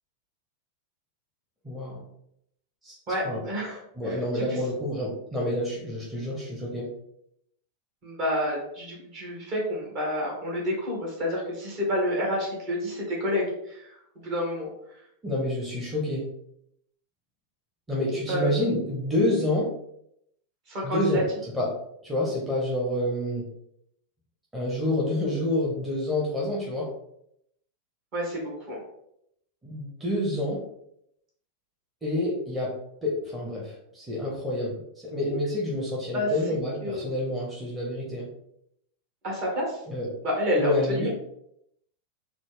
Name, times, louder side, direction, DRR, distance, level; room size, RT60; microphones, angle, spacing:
voice 1, 1.6-2.1 2.8-2.9 3.2-3.4 4.0-6.9 15.2-16.3 17.9-19.7 20.8-21.7 22.0-23.5 24.5-26.9 29.6-30.6 32.0-32.8 33.0-38.3 39.9-40.1 40.6-41.1, left 1 dB, 10° right, -5 dB, 0.9 m, -28 dB
voice 2, 3.1-4.6 8.0-14.7 18.3-18.6 20.7-21.2 28.1-28.8 36.1-36.3 36.8-37.1 39.2-39.8 40.2-41.1, left 1 dB, 40° right, -3 dB, 1.5 m, -29 dB
4.0 x 2.1 x 3.1 m, 0.75 s
figure-of-eight pair, 90°, 0 cm